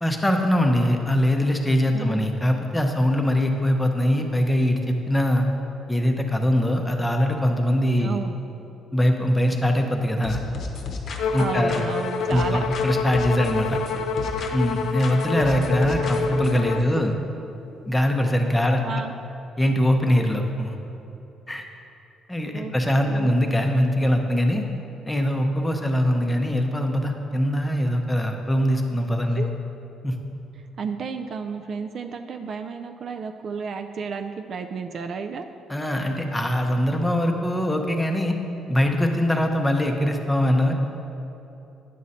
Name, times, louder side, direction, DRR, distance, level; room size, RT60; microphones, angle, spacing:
voice 1, 0.0-5.5 5.9-8.2 8.9-10.4 11.3-11.8 12.3-13.8 14.5-17.1 17.9-18.8 19.6-20.8 21.5-21.6 22.3-24.7 25.1-29.4 30.0-30.2 35.7-38.4 38.7-40.7, equal, 10° left, 3 dB, 0.6 m, -22 dB
voice 2, 1.9-2.2 8.0-8.4 11.4-12.7 16.8-17.1 18.8-19.1 22.5-22.7 23.1-23.3 29.4-29.6 30.8-35.5, right 5 dB, 45° right, 6 dB, 0.3 m, -32 dB
sound 1, 10.2-12.9 13.1-14.7 15.0-16.6, left 3 dB, 50° left, 0.8 m, -34 dB
Bowed string instrument, 11.2-16.9, left 5 dB, 70° left, 0.5 m, -27 dB
9.8 x 6.3 x 4.1 m, 2.9 s
cardioid pair, 150°, 0 cm